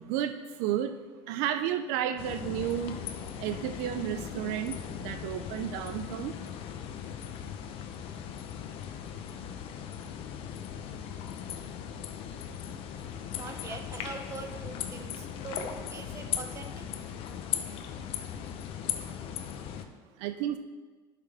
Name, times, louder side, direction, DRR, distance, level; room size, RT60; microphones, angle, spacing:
voice 1, 0.0-3.1 3.4-6.3 20.2-20.6, right 10 dB, 75° right, 10 dB, 0.4 m, -32 dB
sound 1, 2.2-19.8, left 9 dB, 50° left, 0.6 m, -38 dB
voice 2, 13.3-16.8, right 5 dB, 25° right, 5 dB, 0.7 m, -43 dB
10.5 x 5.8 x 3.4 m, 1.4 s
cardioid pair, 140°, 12 cm